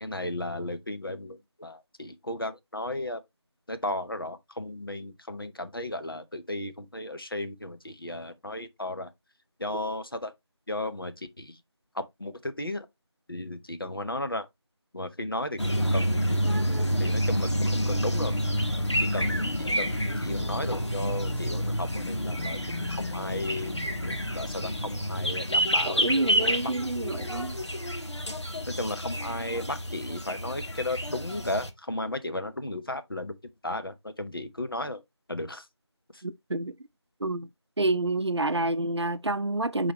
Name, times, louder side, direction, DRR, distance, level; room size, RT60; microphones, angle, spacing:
voice 1, 0.0-3.2 3.7-9.1 9.6-10.3 10.7-11.6 11.9-12.9 13.3-14.5 14.9-16.5 17.0-18.3 19.0-23.7 24.0-26.7 27.1-27.4 28.7-33.4 33.6-35.0 35.3-35.6 36.1-36.2, left 1 dB, 50° left, 1.0 m, -35 dB
sound 1, 15.6-31.7, equal, 75° left, 1.4 m, -29 dB
voice 2, 25.8-27.6 36.2-36.7 37.2-37.5 37.8-39.9, right 2 dB, 70° right, 0.6 m, -28 dB
8.0 x 4.1 x 2.9 m
figure-of-eight pair, 170°, 15 cm